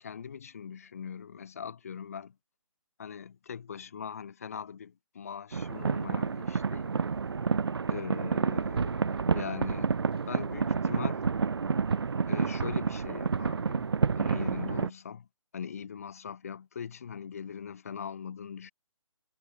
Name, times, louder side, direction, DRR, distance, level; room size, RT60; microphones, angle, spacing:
voice 1, 0.0-2.4 3.0-7.0 7.9-10.0 10.3-11.3 12.3-13.9 14.2-15.3 15.5-18.7, left 7 dB, 25° left, 1.5 m, -41 dB
sound 1, 5.5-14.9, right 5 dB, 50° right, 1.4 m, -29 dB
hypercardioid pair, 180°, 17 cm